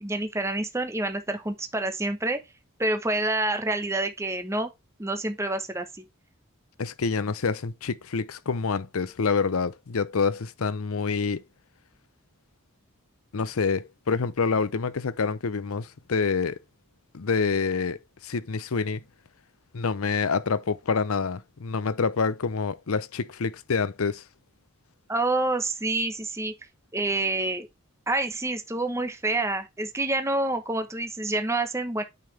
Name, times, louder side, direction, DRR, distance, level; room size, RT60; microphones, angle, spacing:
voice 1, 0.0-2.4 2.8-4.7 5.0-6.0 25.1-26.5 26.9-27.7 28.1-32.0, right 2 dB, 15° right, 0.9 m, -27 dB
voice 2, 6.8-11.4 13.3-16.6 17.1-19.0 19.7-24.2, left 5 dB, 85° left, 0.7 m, -27 dB
9.0 x 5.7 x 3.3 m
head